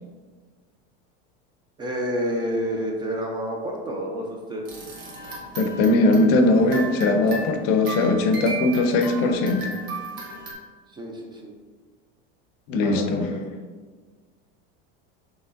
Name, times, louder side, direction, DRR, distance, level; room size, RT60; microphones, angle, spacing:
voice 1, 1.8-4.6 10.9-11.5 12.8-13.5, equal, 15° right, 0 dB, 0.3 m, -29 dB
sound 1, 4.6-10.5, right 2 dB, 70° right, 1.4 m, -36 dB
voice 2, 5.6-9.7 12.7-13.3, left 2 dB, 60° left, 6 dB, 0.6 m, -20 dB
5.0 x 3.0 x 2.5 m, 1.5 s
supercardioid pair, 145°, 29 cm